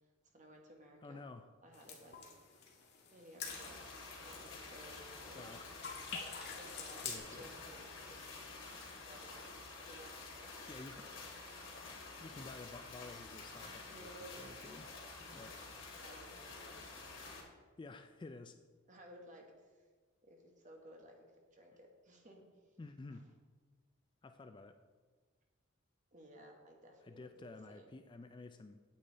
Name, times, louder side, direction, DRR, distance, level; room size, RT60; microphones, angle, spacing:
voice 1, 0.3-1.2 1.6-2.2 3.1-3.9 4.2-5.5 6.6-8.2 8.9-11.1 13.8-14.4 16.0-16.9 18.9-19.8 20.2-21.1 21.5-22.4 23.1-23.2 26.1-27.9, right 1 dB, 40° right, 1 dB, 1.4 m, -57 dB
voice 2, 1.0-1.5 5.3-5.7 6.1-6.5 7.0-7.5 10.7-11.1 12.2-14.9 15.3-15.6 17.8-18.6 22.8-23.3 24.2-24.8 27.0-28.8, left 3 dB, 25° left, 8 dB, 0.3 m, -52 dB
sound 1, 1.7-5.5 5.8-7.2, left 6 dB, 55° left, 1.6 m, -48 dB
sound 2, 3.4-17.4, left 3 dB, 70° left, 2.6 m, -50 dB
8.8 x 8.3 x 4.0 m, 1.5 s
head